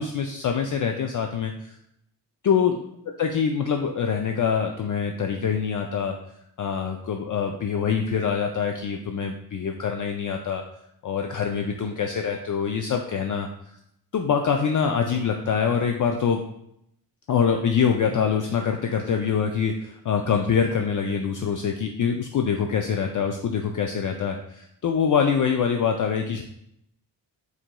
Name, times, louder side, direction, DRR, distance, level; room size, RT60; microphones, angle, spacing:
voice 1, 0.0-1.7 2.4-2.8 3.2-6.2 6.6-10.6 11.0-13.5 14.1-16.4 17.3-26.4, left 6 dB, 45° left, 3 dB, 0.4 m, -24 dB
4.5 x 4.0 x 2.2 m, 0.76 s
cardioid pair, 60°, 43 cm